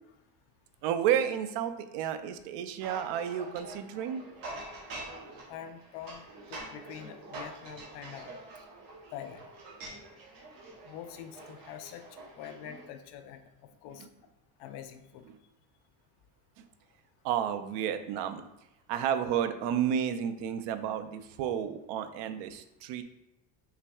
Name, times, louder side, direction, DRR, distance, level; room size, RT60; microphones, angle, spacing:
voice 1, 0.8-4.2 17.2-18.4 18.9-23.0, right 9 dB, 85° right, 10 dB, 0.6 m, -31 dB
sound 1, 2.8-12.9, right 2 dB, 55° right, 1.1 m, -46 dB
voice 2, 5.5-8.3 9.1-9.4 10.8-13.5 13.8-14.1 14.6-15.3, left 9 dB, 75° left, 8 dB, 0.6 m, -45 dB
5.7 x 3.4 x 2.3 m, 0.89 s
cardioid pair, 175°, 41 cm